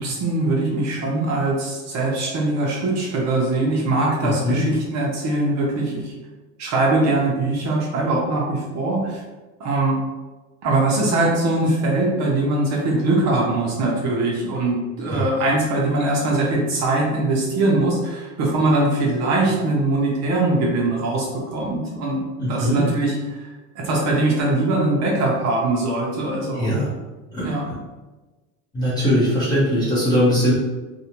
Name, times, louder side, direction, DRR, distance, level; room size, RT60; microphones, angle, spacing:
voice 1, 0.0-6.1 6.6-9.2 9.6-10.0 10.6-22.2 22.5-23.5 23.8-26.7 27.4-27.6, right 2 dB, 45° right, -2 dB, 0.6 m, -21 dB
voice 2, 4.2-4.6 15.1-15.2 22.4-22.8 26.5-26.9 27.3-27.8 28.7-30.5, equal, 10° left, -10 dB, 0.5 m, -20 dB
2.6 x 2.1 x 2.8 m, 1.2 s
cardioid pair, 160°, 38 cm